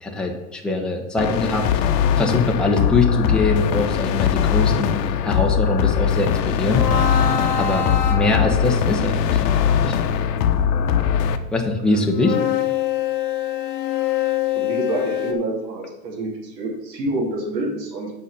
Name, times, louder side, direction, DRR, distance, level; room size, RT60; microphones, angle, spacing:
voice 1, 0.0-1.8 2.2-5.0 5.2-6.9 7.6-9.9 11.5-12.4, left 2 dB, ahead, 0 dB, 1.2 m, -23 dB
sound 1, 1.2-11.4, left 8 dB, 75° left, 0.9 m, -20 dB
sound 2, 6.7-8.9 12.1-15.3, left 10 dB, 45° left, 1.3 m, -24 dB
voice 2, 14.5-18.1, right 2 dB, 80° right, -1 dB, 2.8 m, -27 dB
6.3 x 5.3 x 7.0 m, 0.97 s
hypercardioid pair, 105°, 49 cm